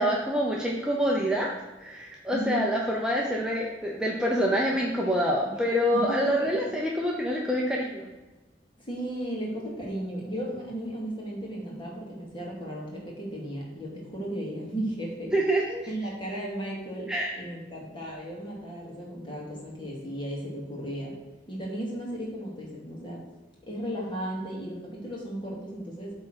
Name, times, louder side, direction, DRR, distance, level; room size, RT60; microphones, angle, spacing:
voice 1, 0.0-1.5 1.8-8.1 15.3-15.8 17.1-17.3, equal, 5° right, -3 dB, 0.8 m, -26 dB
voice 2, 2.3-2.7 5.5-5.6 5.9-6.7 8.8-15.3 15.9-17.1 17.4-21.2 21.5-23.2 23.7-26.1, right 1 dB, 30° left, -3 dB, 2.4 m, -35 dB
8.3 x 3.7 x 6.2 m, 1.1 s
head